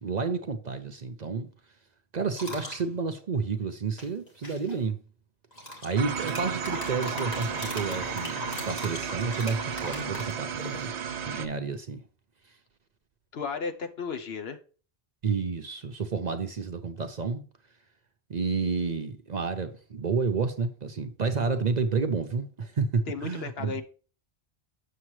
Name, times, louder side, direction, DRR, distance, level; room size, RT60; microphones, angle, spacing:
voice 1, 0.0-1.5 2.1-5.0 5.8-10.9 11.2-12.0 15.2-17.4 18.3-23.8, right 4 dB, 50° right, 0.7 m, -30 dB
sound 1, 2.4-2.8 4.0-4.7 5.5-10.9, left 1 dB, 35° left, 2.1 m, -38 dB
sound 2, 6.0-11.5, right 8 dB, 90° right, 1.0 m, -34 dB
voice 2, 13.3-14.6 23.1-23.8, left 5 dB, 65° left, 1.1 m, -34 dB
7.5 x 6.6 x 3.1 m
omnidirectional pair, 1.1 m